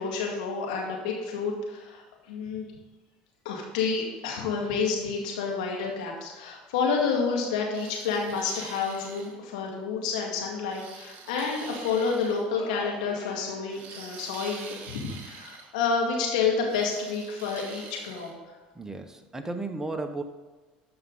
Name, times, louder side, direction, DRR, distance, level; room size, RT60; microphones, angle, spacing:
voice 1, 0.0-2.7 3.4-18.3, left 5 dB, 80° left, -1 dB, 2.2 m, -29 dB
sound 1, 7.7-9.4 10.7-12.5 13.7-15.7 16.7-18.3, right 5 dB, 50° right, 1.9 m, -45 dB
sound 2, 9.8-10.0 10.6-11.7 12.5-13.9, left 2 dB, 55° left, 2.4 m, -46 dB
voice 2, 18.7-20.2, right 2 dB, 15° right, 6 dB, 1.2 m, -34 dB
13.0 x 5.5 x 3.9 m, 1.3 s
hypercardioid pair, 70°, 4 cm